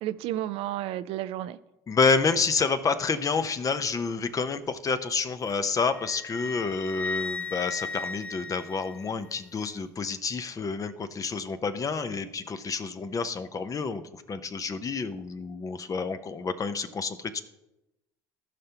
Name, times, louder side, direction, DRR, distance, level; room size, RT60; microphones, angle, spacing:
voice 1, 0.0-1.6, right 13 dB, 65° right, 0.5 m, -32 dB
voice 2, 1.9-17.4, left 4 dB, 35° left, 0.8 m, -29 dB
Wind instrument woodwind instrument, 5.9-9.4, left 4 dB, 15° left, 0.4 m, -36 dB
15.0 x 5.5 x 2.9 m
hypercardioid pair, 70°, 10 cm